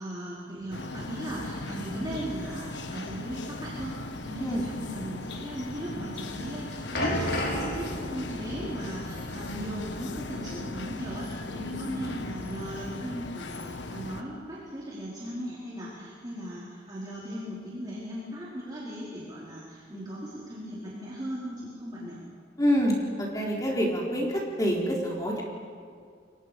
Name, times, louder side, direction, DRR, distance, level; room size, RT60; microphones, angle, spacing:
voice 1, 0.0-3.9 4.2-22.2, equal, 20° right, -8 dB, 4.8 m, -37 dB
sound 1, 0.7-14.2, left 2 dB, 85° left, 1.4 m, -38 dB
sound 2, 6.9-11.2 11.5-11.7 12.4-12.5, equal, 60° left, 4.7 m, -34 dB
voice 2, 22.6-25.4, equal, 20° left, -2 dB, 4.0 m, -26 dB
29.0 x 23.0 x 5.3 m, 2.3 s
head